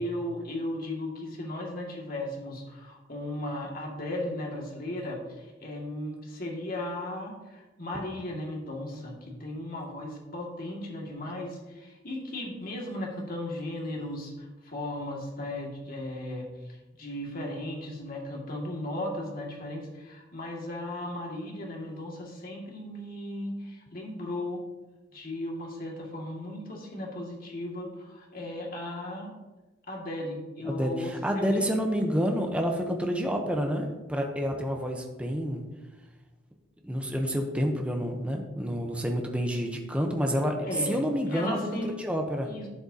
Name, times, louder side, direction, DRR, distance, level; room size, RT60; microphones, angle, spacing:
voice 1, 0.0-24.6 25.1-29.3 29.9-31.6 40.6-41.0 41.3-41.9 42.5-42.7, left 1 dB, 50° left, -2 dB, 2.1 m, -36 dB
voice 2, 30.6-35.6 36.8-40.6 40.8-42.5, equal, 5° right, 2 dB, 0.8 m, -29 dB
11.5 x 7.7 x 2.8 m, 1.1 s
head